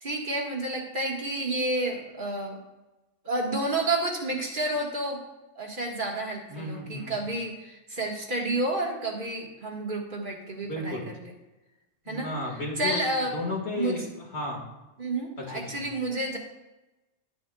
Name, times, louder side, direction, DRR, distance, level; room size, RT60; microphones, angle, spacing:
voice 1, 0.0-2.6 3.3-5.2 5.6-11.3 12.1-12.3 12.8-13.4 13.7-14.0 15.0-16.4, right 2 dB, 40° right, 0 dB, 1.6 m, -30 dB
voice 2, 6.5-7.2 10.6-11.1 12.1-14.1 14.3-14.6 15.7-15.9, left 2 dB, 55° left, -1 dB, 2.0 m, -33 dB
12.0 x 9.0 x 2.3 m, 1.0 s
omnidirectional pair, 1.3 m